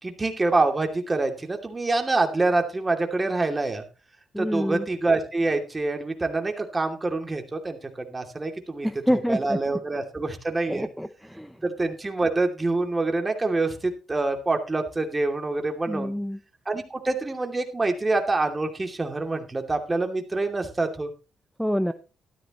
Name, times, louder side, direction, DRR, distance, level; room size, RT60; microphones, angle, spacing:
voice 1, 0.0-3.8 4.4-10.9 11.6-16.2 16.7-21.1, right 3 dB, 20° right, 4 dB, 2.6 m, -26 dB
voice 2, 4.3-4.9 8.8-9.6 10.7-11.6 15.9-16.4 21.6-21.9, equal, ahead, 11 dB, 0.7 m, -27 dB
13.5 x 12.5 x 3.0 m, 0.32 s
cardioid pair, 90°, 0 cm